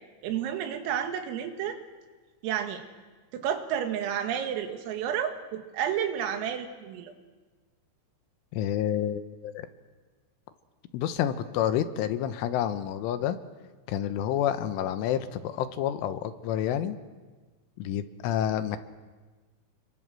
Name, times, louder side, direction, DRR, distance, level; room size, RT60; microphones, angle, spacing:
voice 1, 0.2-1.8 2.4-2.8 3.3-7.1, right 9 dB, 85° right, 7 dB, 4.5 m, -31 dB
voice 2, 8.5-9.7 10.9-13.4 13.9-17.0 17.8-18.8, left 10 dB, 75° left, 11 dB, 3.4 m, -29 dB
30.0 x 23.5 x 7.6 m, 1.4 s
omnidirectional pair, 5.9 m